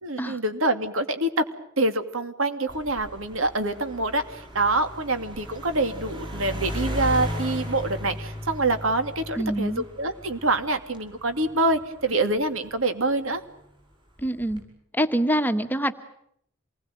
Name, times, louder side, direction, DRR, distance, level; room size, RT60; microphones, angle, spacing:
voice 1, 0.0-1.3 1.8-13.4, right 2 dB, 75° right, 8 dB, 2.6 m, -26 dB
sound 1, 2.7-13.4 14.2-14.6, left 1 dB, 25° right, 7.7 m, -36 dB
voice 2, 9.4-9.8 14.2-14.6 14.9-15.9, right 1 dB, 10° left, 8 dB, 1.4 m, -25 dB
27.5 x 20.5 x 9.2 m, 0.71 s
head